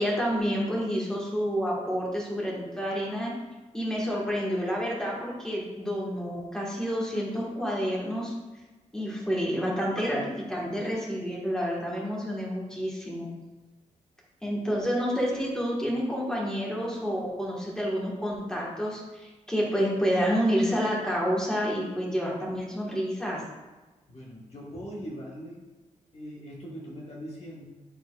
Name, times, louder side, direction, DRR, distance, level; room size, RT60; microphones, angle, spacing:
voice 1, 0.0-3.3 3.7-8.3 8.9-13.3 14.4-23.4, equal, 5° left, -4 dB, 1.6 m, -29 dB
voice 2, 24.1-25.7 26.1-27.6, equal, 50° left, -4 dB, 1.3 m, -41 dB
10.0 x 4.0 x 2.4 m, 1.2 s
wide cardioid pair, 105°, 13 cm